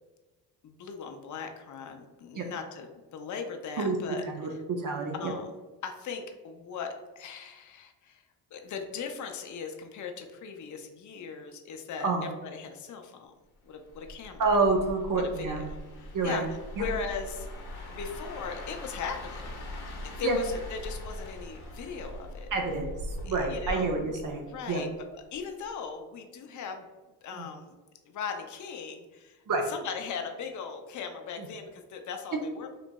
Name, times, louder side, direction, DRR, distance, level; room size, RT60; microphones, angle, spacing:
voice 1, 0.6-4.2 5.1-5.5 5.8-8.2 8.5-12.1 12.5-13.3 13.6-14.6 15.2-15.6 16.0-16.4 16.8-17.5 17.9-19.5 20.0-22.5 23.2-23.9 24.4-24.9 25.3-26.9 27.2-27.7 28.1-29.4 29.7-32.7, left 6 dB, 45° left, 5 dB, 0.5 m, -38 dB
voice 2, 4.2-5.3 12.0-12.3 14.4-15.6 16.1-16.4 16.8-16.9 20.2-20.4 22.5-24.8 27.3-27.5 29.5-29.7 31.4-31.5, right 3 dB, 50° right, 2 dB, 0.5 m, -28 dB
sound 1, 13.9-25.0 25.3-25.6, left 1 dB, 65° left, 0.8 m, -41 dB
2.9 x 2.5 x 2.2 m, 1.2 s
cardioid pair, 75°, 42 cm